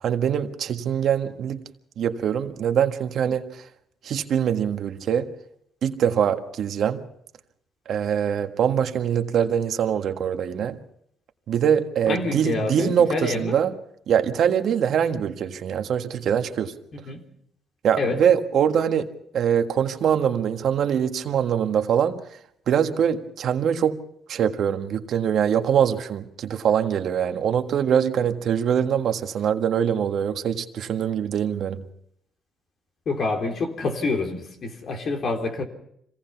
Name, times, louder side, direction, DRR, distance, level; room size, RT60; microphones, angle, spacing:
voice 1, 0.0-1.6 2.0-3.6 4.0-5.3 5.8-7.0 7.9-10.8 11.5-13.7 14.1-16.7 17.8-22.2 22.7-24.0 24.3-31.8, right 8 dB, 65° right, 6 dB, 1.6 m, -23 dB
voice 2, 12.1-13.6 16.9-17.2 18.0-18.2 33.1-35.6, left 3 dB, 55° left, 3 dB, 3.8 m, -27 dB
26.0 x 17.5 x 5.9 m, 0.72 s
cardioid pair, 90°, 0 cm